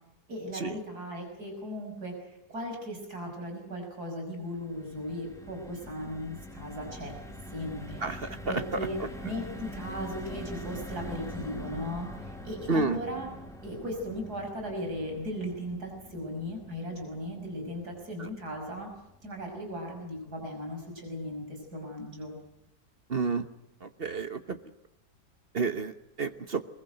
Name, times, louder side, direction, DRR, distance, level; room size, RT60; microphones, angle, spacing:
voice 1, 0.3-7.1 7.5-8.1 8.5-9.0 9.2-13.3 13.6-18.9 19.2-22.3, equal, 60° right, 3 dB, 6.5 m, -37 dB
sound 1, 4.4-20.7 21.1-21.3 21.5-21.8, equal, ahead, 2.6 m, -44 dB
voice 2, 8.0-8.6 12.7-13.0 18.2-18.3 23.1-23.5 23.8-24.6 25.5-26.6, right 4 dB, 40° right, 10 dB, 1.1 m, -30 dB
24.0 x 22.0 x 7.9 m, 0.85 s
omnidirectional pair, 1.9 m